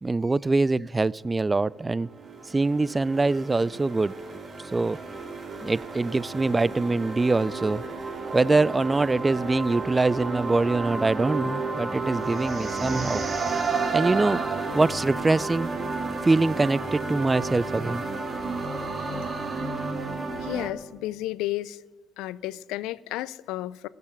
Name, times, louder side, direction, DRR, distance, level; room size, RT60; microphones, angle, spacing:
voice 1, 0.0-2.1 2.5-4.1 4.7-5.0 5.6-7.8 8.3-13.2 13.5-13.6 13.9-14.4 14.7-15.7 16.2-18.0, right 3 dB, 20° right, 0.3 m, -24 dB
sound 1, 1.5-20.7, right 3 dB, 35° right, 2.2 m, -32 dB
voice 2, 20.4-21.8 22.2-23.9, left 16 dB, 80° left, 0.4 m, -32 dB
16.0 x 6.8 x 9.8 m
supercardioid pair, 65°, 0 cm